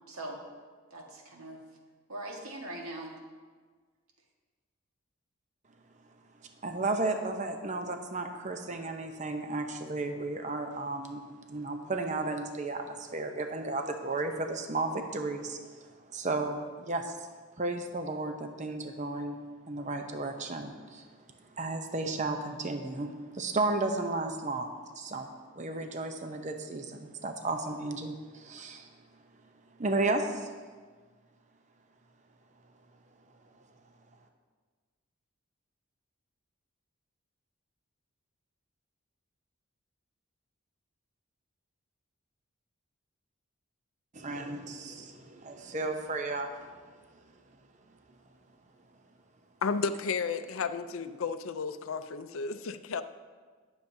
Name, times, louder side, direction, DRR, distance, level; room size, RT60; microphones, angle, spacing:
voice 1, 0.1-0.4 0.9-1.6 2.1-3.2, right 1 dB, 85° right, 0 dB, 1.7 m, -41 dB
voice 2, 6.6-11.2 11.5-17.1 17.6-19.4 19.7-21.1 21.5-24.7 25.0-25.3 25.6-28.9 29.8-30.5 44.1-46.7, right 2 dB, 35° right, 5 dB, 0.7 m, -33 dB
voice 3, 49.6-53.0, left 5 dB, 70° left, 10 dB, 0.5 m, -33 dB
19.0 x 7.1 x 2.7 m, 1.5 s
head